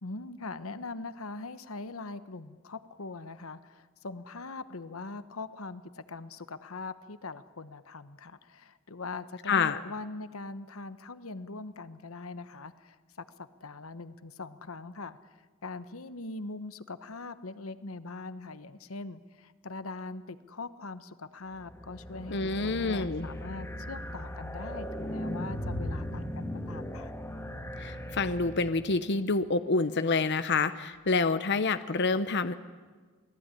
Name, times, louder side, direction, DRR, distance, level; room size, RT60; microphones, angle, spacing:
voice 1, 0.0-27.1, left 3 dB, 85° left, 13 dB, 1.1 m, -42 dB
voice 2, 9.5-9.8 22.3-23.3 27.8-32.5, left 4 dB, 55° left, 11 dB, 0.9 m, -27 dB
sound 1, 21.5-29.0, equal, 15° left, 3.0 m, -38 dB
27.5 x 19.0 x 9.9 m, 1.4 s
head